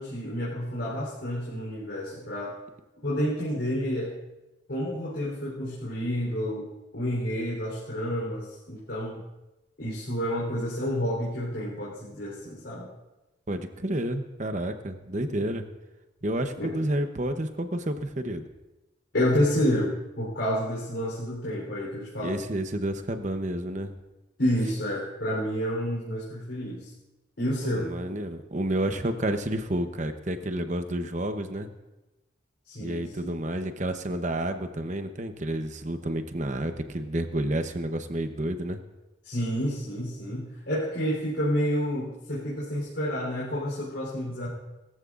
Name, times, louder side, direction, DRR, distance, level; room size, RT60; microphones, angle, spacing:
voice 1, 0.0-2.5 3.0-4.1 4.7-9.2 9.8-12.9 16.6-16.7 19.1-22.5 24.4-26.9 27.4-27.9 32.7-33.3 39.2-44.5, equal, 70° left, -6 dB, 3.7 m, -29 dB
voice 2, 13.5-15.6 16.2-18.5 22.2-23.9 27.6-31.7 32.8-38.8, right 1 dB, 40° right, 8 dB, 0.9 m, -30 dB
20.5 x 14.0 x 2.5 m, 1.0 s
head